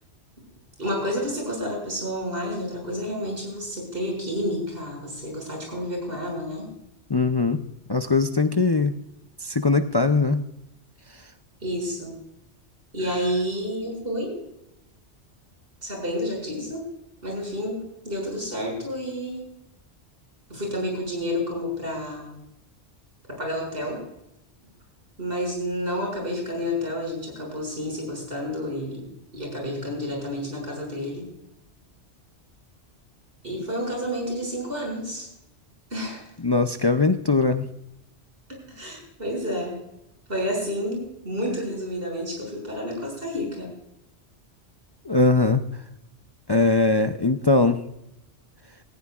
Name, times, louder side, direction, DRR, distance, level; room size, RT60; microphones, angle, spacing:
voice 1, 0.8-6.7 11.6-12.1 12.9-14.4 15.8-16.8 17.2-17.8 18.0-19.4 20.5-22.4 23.3-24.0 25.2-29.1 29.3-31.3 33.4-35.3 35.9-36.2 38.5-39.8 40.3-43.7, equal, 55° right, -1 dB, 6.5 m, -30 dB
voice 2, 7.1-7.6 7.9-8.9 9.4-10.4 36.4-37.7 45.0-45.6 46.5-47.8, left 3 dB, 35° left, 7 dB, 0.4 m, -20 dB
18.0 x 15.5 x 2.4 m, 0.81 s
omnidirectional pair, 1.2 m